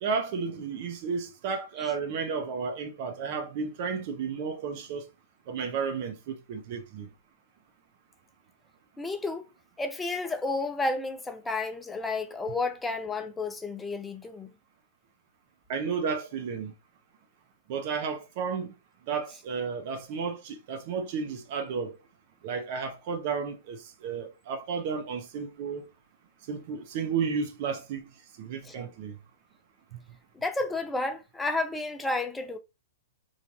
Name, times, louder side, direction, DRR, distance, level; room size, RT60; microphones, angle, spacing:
voice 1, 0.0-5.1 5.5-7.1 15.7-16.7 17.7-18.7 19.1-21.9 22.4-25.9 26.5-28.1 28.4-29.1, right 5 dB, 50° right, 0.7 m, -32 dB
voice 2, 9.0-9.5 9.8-14.5 28.6-28.7 30.4-32.6, left 3 dB, 10° left, 0.5 m, -31 dB
3.2 x 2.5 x 2.6 m
hypercardioid pair, 115°, 0 cm